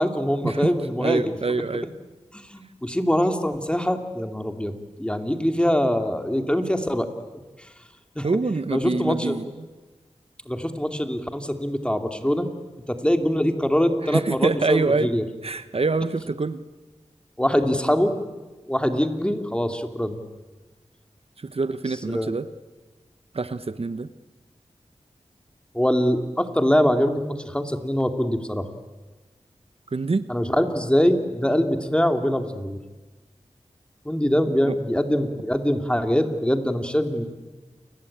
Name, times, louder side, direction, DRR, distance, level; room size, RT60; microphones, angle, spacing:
voice 1, 0.0-1.4 2.3-7.1 8.2-8.3 8.7-9.4 10.5-12.5 12.9-15.2 17.4-18.1 18.7-20.2 22.1-22.3 25.7-28.7 30.3-32.8 34.0-37.3, equal, 10° left, 6 dB, 2.7 m, -23 dB
voice 2, 1.0-1.9 8.2-9.7 14.0-15.1 15.4-16.6 21.4-22.5 23.3-24.1 29.9-30.3 34.6-34.7, right 3 dB, 55° right, 12 dB, 0.9 m, -25 dB
29.0 x 21.5 x 8.8 m, 1.2 s
wide cardioid pair, 60°, 12 cm